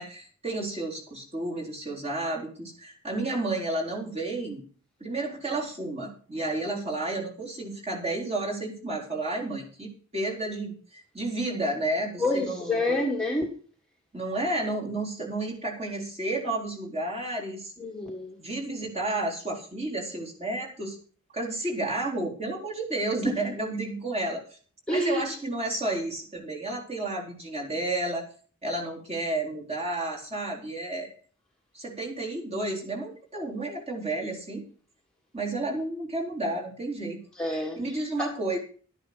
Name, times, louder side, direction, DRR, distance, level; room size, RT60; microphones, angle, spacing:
voice 1, 0.0-4.6 5.0-13.0 14.1-17.7 18.4-21.0 21.3-24.4 24.9-28.3 28.6-31.1 31.7-34.6 35.3-37.2 37.8-38.6, right 2 dB, 25° right, -2 dB, 4.1 m, -31 dB
voice 2, 12.2-13.6 17.8-18.4 23.2-23.4 24.9-25.3 37.3-38.3, left 2 dB, 5° left, -1 dB, 1.7 m, -28 dB
12.0 x 10.5 x 5.1 m, 0.41 s
head